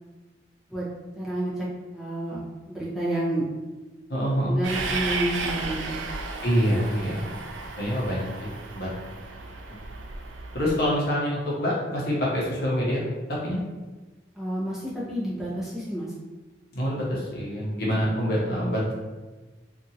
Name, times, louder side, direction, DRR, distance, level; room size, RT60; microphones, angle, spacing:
voice 1, 1.2-1.7 1.9-3.5 4.4-6.0 14.3-16.1, right 1 dB, ahead, -10 dB, 0.8 m, -30 dB
voice 2, 4.1-4.6 6.4-7.3 7.8-8.9 10.5-13.0 13.4-13.6 16.7-18.9, equal, 60° left, -5 dB, 0.8 m, -26 dB
Train, 4.6-10.9, right 4 dB, 90° right, 0.4 m, -34 dB
2.8 x 2.4 x 2.7 m, 1.2 s
head